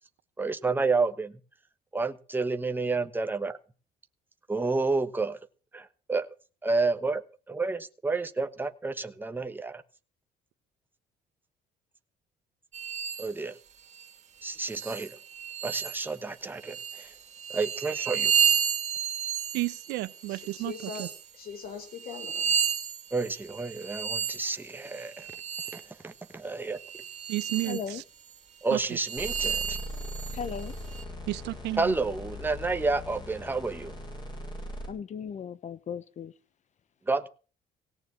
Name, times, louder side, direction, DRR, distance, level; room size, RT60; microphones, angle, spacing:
voice 1, 0.4-1.3 1.9-3.6 4.5-5.4 5.7-6.3 6.6-7.2 7.5-9.8 13.2-13.5 14.4-15.2 15.6-17.1 17.5-18.2 23.1-25.3 25.7-26.8 28.6-29.8 31.8-33.9 37.1-37.3, right 3 dB, 10° right, 1.2 m, -30 dB
sound 1, 12.7-13.3 13.9-14.1 14.6-16.2 16.6-21.2 21.8-25.9 26.7-27.9 28.3-28.4 28.9-31.0, right 8 dB, 45° right, 2.8 m, -32 dB
voice 2, 19.5-20.7 21.0-21.1 27.3-27.8 28.7-28.8 31.3-31.9, right 18 dB, 90° right, 1.0 m, -31 dB
voice 3, 20.3-22.6, left 6 dB, 65° left, 5.8 m, -42 dB
voice 4, 27.7-28.0 30.3-30.7 34.9-36.3, left 7 dB, 45° left, 1.1 m, -36 dB
sound 2, 29.2-34.9, left 1 dB, 25° left, 6.6 m, -40 dB
17.5 x 7.0 x 8.3 m
cardioid pair, 110°, 17 cm